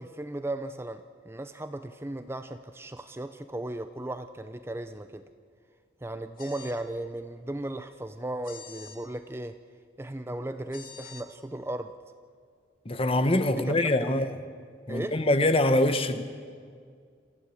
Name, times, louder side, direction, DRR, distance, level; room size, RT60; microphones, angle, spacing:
voice 1, 0.0-5.2 6.0-9.6 10.0-11.9 13.4-13.8 14.1-14.2 14.9-15.2, right 1 dB, 15° right, 0.5 m, -36 dB
sound 1, 6.4-6.8 8.4-9.0 10.7-11.2, left 7 dB, 50° left, 2.0 m, -46 dB
voice 2, 12.8-14.4 14.9-16.2, left 1 dB, 30° left, 1.0 m, -24 dB
27.0 x 15.0 x 7.7 m
head